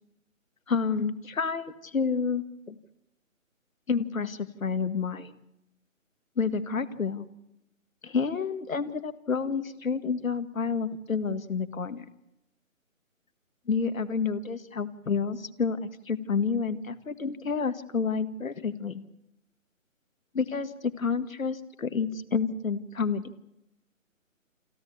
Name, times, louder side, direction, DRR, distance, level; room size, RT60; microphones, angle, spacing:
voice 1, 0.7-2.8 3.9-5.3 6.4-7.3 8.0-12.1 13.7-19.0 20.3-23.3, left 5 dB, 75° left, 11 dB, 1.9 m, -29 dB
28.5 x 11.5 x 8.5 m, 0.84 s
hypercardioid pair, 175°, 40 cm